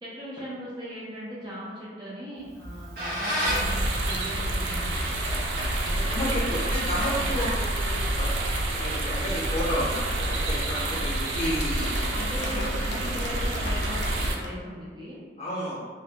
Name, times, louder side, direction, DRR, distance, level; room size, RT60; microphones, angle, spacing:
voice 1, 0.0-5.1 5.8-6.8 7.2-7.4 10.8-11.0 12.1-15.2, equal, 25° right, -7 dB, 0.4 m, -39 dB
Squeak, 2.5-7.9, equal, 55° right, 0.7 m, -34 dB
sound 1, 3.4-14.4, right 1 dB, 85° right, 0.3 m, -28 dB
voice 2, 6.0-8.4 8.7-11.9 12.5-12.8 15.4-15.8, equal, 35° left, -7 dB, 0.6 m, -32 dB
sound 2, 11.0-14.5, left 1 dB, 75° left, 0.4 m, -41 dB
2.2 x 2.1 x 2.8 m, 1.5 s
head